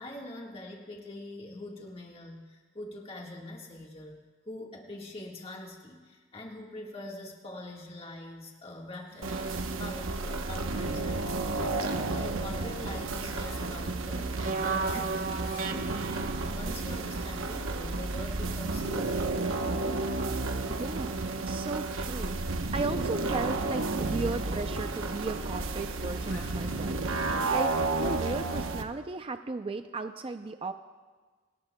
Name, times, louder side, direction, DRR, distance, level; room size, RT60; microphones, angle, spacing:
voice 1, 0.0-11.3 11.6-16.0 16.5-19.4, left 1 dB, 30° left, -1 dB, 1.5 m, -43 dB
Zipper (clothing), 8.6-10.2 10.7-12.0 12.6-14.8 15.0-16.2 17.1-24.2 25.8-27.1, left 2 dB, 90° left, 5.0 m, -57 dB
sound 1, 9.2-28.8, right 3 dB, 90° right, 0.9 m, -31 dB
voice 2, 20.7-27.1 27.5-27.7 28.0-30.7, right 3 dB, 30° right, 8 dB, 0.4 m, -36 dB
24.5 x 18.5 x 2.2 m, 1.4 s
head